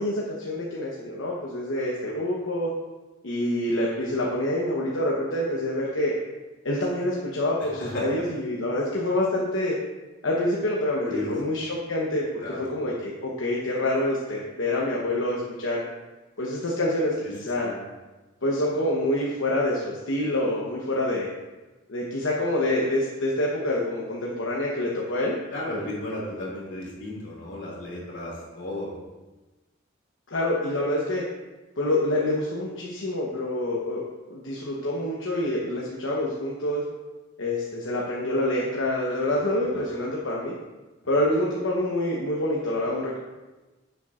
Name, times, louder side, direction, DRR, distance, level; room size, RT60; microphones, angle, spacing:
voice 1, 0.0-2.7 3.2-6.1 6.6-9.8 10.2-12.3 12.6-15.8 16.4-17.7 18.4-21.3 21.9-25.3 30.3-31.2 31.8-34.0 34.3-36.8 37.4-40.5 41.1-43.2, left 1 dB, 85° left, -4 dB, 1.0 m, -26 dB
voice 2, 7.6-8.1 11.1-11.3 12.4-12.6 17.6-17.7 25.5-28.9 39.7-39.8, left 1 dB, 70° left, -5 dB, 2.7 m, -34 dB
9.9 x 6.9 x 2.5 m, 1.2 s
head